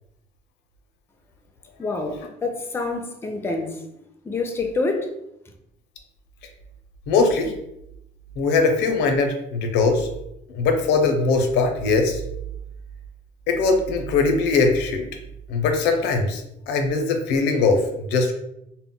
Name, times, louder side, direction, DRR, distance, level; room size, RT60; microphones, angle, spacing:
voice 1, 1.8-5.1, left 3 dB, 15° left, 4 dB, 0.4 m, -27 dB
voice 2, 7.1-7.5 8.4-10.1 10.5-12.2 13.5-15.1 15.5-18.3, left 4 dB, 85° left, 5 dB, 0.5 m, -21 dB
2.1 x 2.0 x 3.6 m, 0.80 s
cardioid pair, 110°, 17 cm